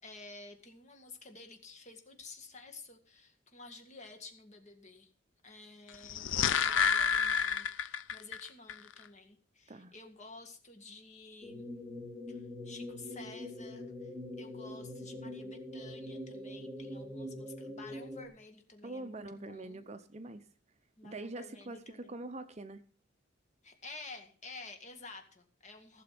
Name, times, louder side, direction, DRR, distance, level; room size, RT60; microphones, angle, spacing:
voice 1, 0.0-5.1 5.4-11.6 12.3-14.1 14.4-19.8 21.0-22.2 23.6-26.0, left 3 dB, 35° left, 2.1 m, -51 dB
sound 1, 5.9-8.4 8.7-8.8, left 7 dB, 70° left, 0.6 m, -29 dB
sound 2, 11.4-18.3, left 1 dB, ahead, 2.0 m, -43 dB
voice 2, 18.8-20.4 21.0-22.8, right 2 dB, 35° right, 0.7 m, -44 dB
16.0 x 6.9 x 6.0 m
head